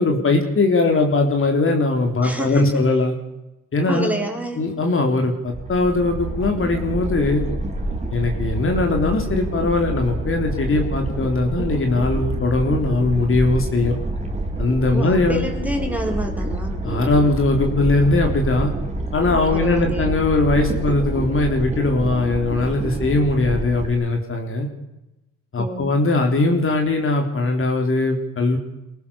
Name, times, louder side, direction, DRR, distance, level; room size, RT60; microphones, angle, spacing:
voice 1, 0.0-3.2 3.7-4.2 4.6-7.4 8.1-14.0 14.6-15.5 16.8-18.7 19.1-24.7 25.5-28.6, left 2 dB, 40° left, 3 dB, 3.8 m, -20 dB
voice 2, 2.2-2.8 3.9-4.7 14.9-16.8 19.5-20.1 25.6-25.9, equal, 5° right, 2 dB, 5.0 m, -28 dB
sound 1, 5.5-23.9, right 1 dB, 20° right, 4.1 m, -27 dB
23.5 x 18.0 x 7.1 m, 0.95 s
cardioid pair, 90°, 32 cm